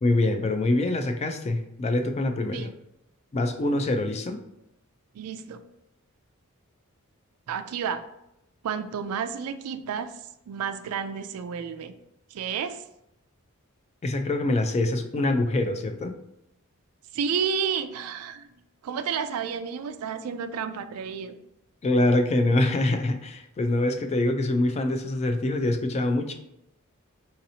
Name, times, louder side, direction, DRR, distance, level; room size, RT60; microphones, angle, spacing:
voice 1, 0.0-2.7 3.3-4.4 14.0-16.1 21.8-26.3, left 2 dB, 30° left, 6 dB, 0.3 m, -24 dB
voice 2, 5.2-5.6 7.5-8.0 8.6-10.1 10.5-11.9 12.3-12.8 17.1-18.5 18.8-21.4, right 7 dB, 80° right, 11 dB, 0.3 m, -31 dB
4.0 x 2.8 x 2.7 m, 0.84 s
head